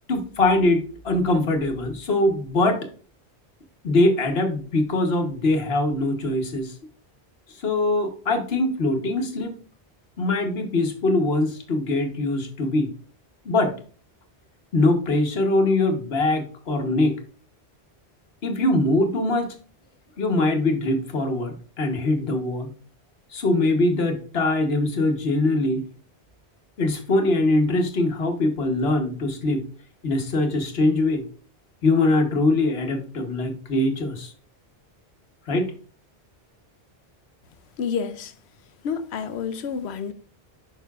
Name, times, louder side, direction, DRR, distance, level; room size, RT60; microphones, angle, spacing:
voice 1, 0.1-2.9 3.8-6.7 7.6-9.5 10.2-12.9 13.4-13.7 14.7-17.2 18.4-19.6 20.2-22.7 23.3-25.8 26.8-29.7 30.0-31.2 31.8-34.3 35.5-35.7, left 2 dB, 75° left, 1.3 m, -22 dB
voice 2, 37.8-38.3 38.8-40.1, left 6 dB, 90° left, 0.9 m, -29 dB
9.1 x 5.6 x 2.4 m
omnidirectional pair, 1.1 m